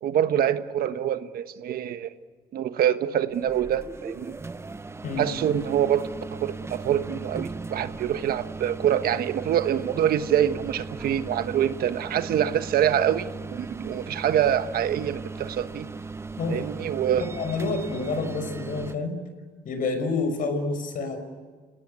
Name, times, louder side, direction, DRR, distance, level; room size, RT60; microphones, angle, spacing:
voice 1, 0.0-2.1 2.5-4.4 5.2-15.9 16.5-17.3, right 10 dB, 60° right, 10 dB, 1.3 m, -25 dB
sound 1, 3.3-18.9, right 3 dB, 15° right, 0.9 m, -37 dB
voice 2, 5.0-5.4 16.4-16.7 17.2-19.1 19.6-21.2, left 3 dB, 55° left, 8 dB, 5.7 m, -28 dB
29.5 x 18.0 x 9.6 m, 1.5 s
cardioid pair, 110°, 17 cm